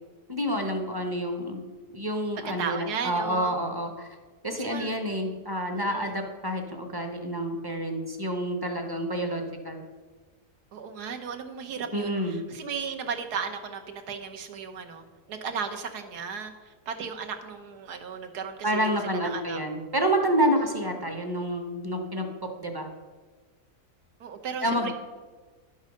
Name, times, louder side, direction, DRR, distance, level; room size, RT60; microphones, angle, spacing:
voice 1, 0.3-1.6 1.9-4.1 4.4-9.8 11.9-12.4 18.6-22.3 22.6-22.9 24.6-24.9, equal, 20° right, 4 dB, 0.7 m, -28 dB
voice 2, 2.6-3.5 4.6-4.9 5.7-6.1 10.7-19.6 20.4-20.8 24.2-24.9, right 6 dB, 80° right, 5 dB, 1.5 m, -35 dB
10.5 x 5.5 x 6.3 m, 1.4 s
omnidirectional pair, 1.7 m